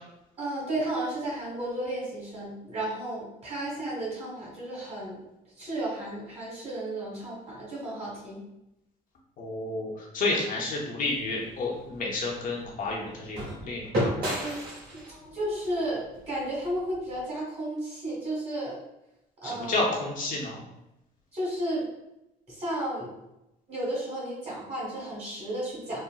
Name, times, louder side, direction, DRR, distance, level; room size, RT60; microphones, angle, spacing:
voice 1, 0.4-5.2 5.6-8.4 14.3-15.0 15.3-18.8 19.4-19.8 21.3-21.8 22.5-23.1 23.7-26.0, right 1 dB, 40° right, -6 dB, 1.4 m, -33 dB
voice 2, 9.4-14.4 19.4-20.6, left 2 dB, 55° left, -3 dB, 0.7 m, -31 dB
sound 1, 11.1-17.3, equal, 60° right, 1.3 m, -35 dB
3.9 x 2.1 x 2.3 m, 0.88 s
cardioid pair, 110°, 17 cm